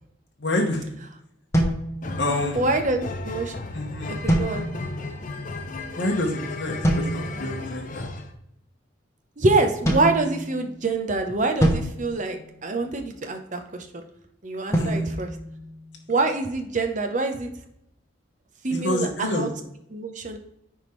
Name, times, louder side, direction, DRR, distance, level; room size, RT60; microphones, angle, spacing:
voice 1, 0.4-0.9 2.2-2.6 3.7-4.2 5.9-8.1 14.8-15.1 18.7-19.5, left 1 dB, 60° left, 0 dB, 1.1 m, -27 dB
sound 1, 1.5-2.6 4.3-5.1 6.8-7.5 9.8-10.9 11.6-13.1 14.7-16.2, right 1 dB, 15° left, 1.0 m, -26 dB
sound 2, 2.0-8.3, left 2 dB, 40° left, 0.7 m, -35 dB
voice 2, 2.5-3.5 4.1-4.6 9.4-14.0 14.4-15.3 16.1-17.5 18.6-19.5 19.9-20.4, right 3 dB, 40° right, 5 dB, 0.8 m, -25 dB
10.0 x 3.6 x 3.2 m, 0.77 s
head